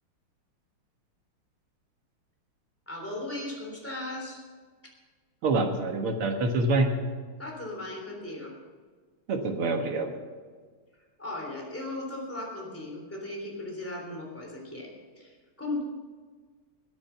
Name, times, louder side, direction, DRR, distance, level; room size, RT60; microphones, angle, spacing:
voice 1, 2.9-4.4 7.4-8.5 11.2-15.8, left 2 dB, 5° left, -1 dB, 3.4 m, -37 dB
voice 2, 5.4-6.9 9.3-10.1, right 2 dB, 85° right, 4 dB, 2.5 m, -26 dB
19.5 x 8.9 x 5.8 m, 1.5 s
omnidirectional pair, 2.3 m